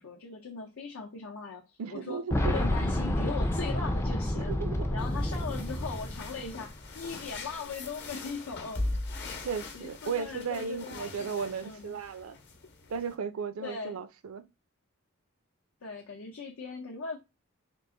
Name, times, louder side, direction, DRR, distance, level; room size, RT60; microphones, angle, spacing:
voice 1, 0.0-4.5 4.9-8.9 9.7-12.0 13.6-14.0 15.8-17.2, left 4 dB, 80° left, 0.7 m, -39 dB
voice 2, 1.8-2.7 4.4-4.9 9.4-12.4 12.9-14.4, right 6 dB, 70° right, 0.4 m, -35 dB
Boom, 2.3-7.1 7.3-7.4 8.5-8.6, left 1 dB, 10° left, 0.4 m, -30 dB
sound 1, 5.0-13.2, left 2 dB, 55° left, 0.9 m, -41 dB
3.8 x 2.5 x 3.7 m
head